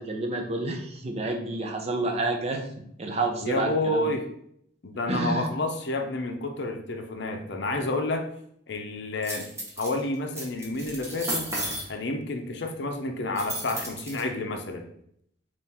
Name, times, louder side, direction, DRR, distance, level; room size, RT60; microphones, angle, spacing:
voice 1, 0.0-2.6 3.0-4.1 5.1-5.5, right 2 dB, 35° right, 2 dB, 0.6 m, -29 dB
voice 2, 3.4-4.3 4.8-8.3 8.7-9.5 9.8-11.5 11.9-14.9, left 2 dB, 65° left, 5 dB, 0.6 m, -29 dB
sound 1, 9.2-9.9 10.3-11.8 13.4-14.2, right 1 dB, 15° right, 1.0 m, -33 dB
3.6 x 2.5 x 4.3 m, 0.70 s
head